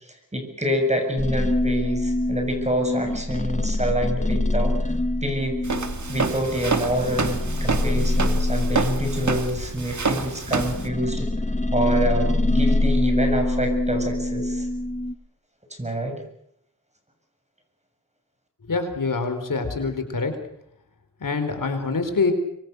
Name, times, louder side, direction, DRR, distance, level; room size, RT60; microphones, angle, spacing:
voice 1, 0.1-4.9 5.2-5.6 6.1-11.3 11.7-14.7 15.8-16.2, equal, 20° right, 4 dB, 7.6 m, -27 dB
sound 1, 1.2-9.9 10.5-15.1, left 1 dB, 20° left, 2.1 m, -24 dB
Walk footsteps, 5.6-10.9, right 4 dB, 55° right, 2.5 m, -28 dB
voice 2, 18.6-20.3 21.2-22.3, left 4 dB, 70° left, 7 dB, 4.5 m, -25 dB
25.5 x 24.0 x 6.7 m, 0.73 s
wide cardioid pair, 80°, 33 cm